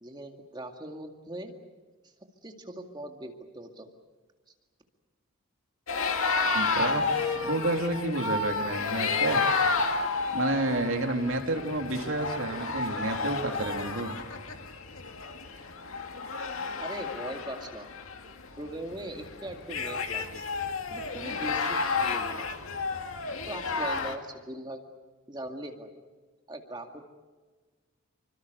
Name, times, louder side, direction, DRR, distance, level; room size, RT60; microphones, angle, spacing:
voice 1, 0.0-1.5 2.4-3.9 16.8-17.9 18.6-20.5 20.9-22.5 23.5-24.8 25.3-25.9 26.5-27.0, right 1 dB, 20° right, 4 dB, 2.1 m, -40 dB
sound 1, 5.9-24.1, left 4 dB, 70° left, 2.1 m, -31 dB
voice 2, 6.5-9.4 10.3-14.2, right 2 dB, 60° right, 4 dB, 2.9 m, -30 dB
27.0 x 25.0 x 6.7 m, 1.3 s
head